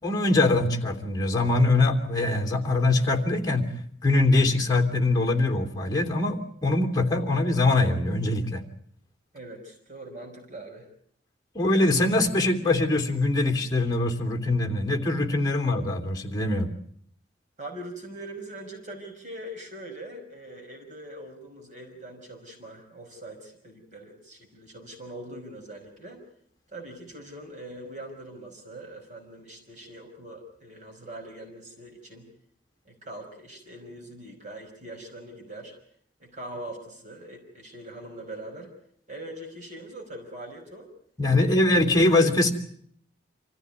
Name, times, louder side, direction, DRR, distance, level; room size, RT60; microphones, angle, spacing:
voice 1, 0.0-3.7 4.0-8.6 11.5-16.7 41.2-42.5, left 2 dB, 20° left, 4 dB, 3.0 m, -23 dB
voice 2, 9.3-10.9 15.5-15.6 17.6-26.2 26.7-32.3 32.9-35.7 36.2-38.7 39.1-40.9 41.4-41.8, right 1 dB, 45° right, 3 dB, 5.3 m, -42 dB
27.0 x 15.0 x 9.7 m, 0.64 s
head